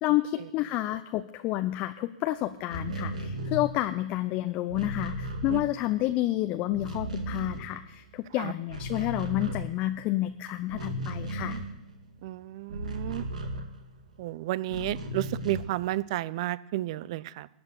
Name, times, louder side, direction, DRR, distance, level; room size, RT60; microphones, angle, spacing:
voice 1, 0.0-11.6, left 15 dB, 35° left, 9 dB, 0.6 m, -30 dB
sound 1, 2.6-6.3 6.5-8.3 8.5-14.2 14.7-15.9, right 1 dB, 75° right, 2.0 m, -36 dB
voice 2, 12.2-13.2 14.2-17.5, right 15 dB, 50° right, 19 dB, 0.5 m, -32 dB
14.0 x 9.0 x 6.8 m, 0.85 s
figure-of-eight pair, 105°, 4 cm